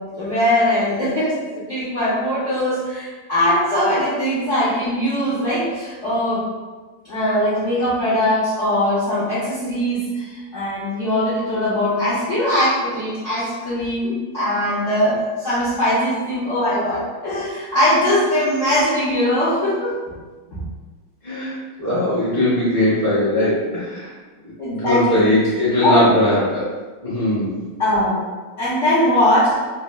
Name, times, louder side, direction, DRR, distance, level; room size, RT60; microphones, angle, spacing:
voice 1, 0.1-1.3 1.7-6.4 7.0-20.0 20.5-20.6 24.6-25.3 25.8-26.2 27.8-28.2 28.6-29.6, left 1 dB, 65° left, -11 dB, 0.7 m, -20 dB
voice 2, 21.2-24.1 24.6-26.7 27.0-27.6, left 1 dB, 55° right, -11 dB, 0.4 m, -19 dB
4.0 x 2.1 x 2.2 m, 1.3 s
omnidirectional pair, 2.3 m